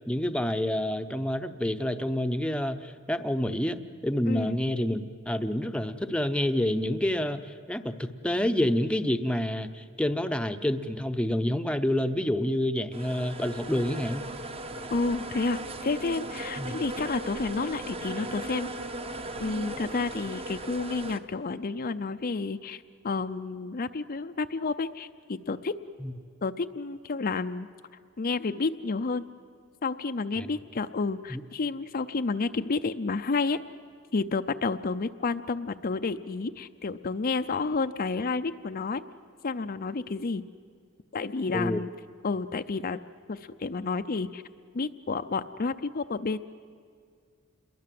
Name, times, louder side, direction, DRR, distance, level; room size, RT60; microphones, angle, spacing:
voice 1, 0.1-14.2 16.6-16.7 26.0-26.1 30.4-30.5 31.3-31.4 41.5-41.8, left 1 dB, 5° left, 8 dB, 0.8 m, -28 dB
voice 2, 4.3-4.6 14.9-18.7 19.4-25.7 26.4-27.7 28.2-29.3 29.8-33.6 34.1-39.0 39.4-40.4 41.1-41.9 42.2-43.0 43.3-44.4 44.7-46.4, left 4 dB, 40° left, 9 dB, 0.6 m, -30 dB
sound 1, 12.9-21.2, right 2 dB, 25° right, 1.0 m, -37 dB
28.5 x 22.0 x 7.7 m, 2.3 s
head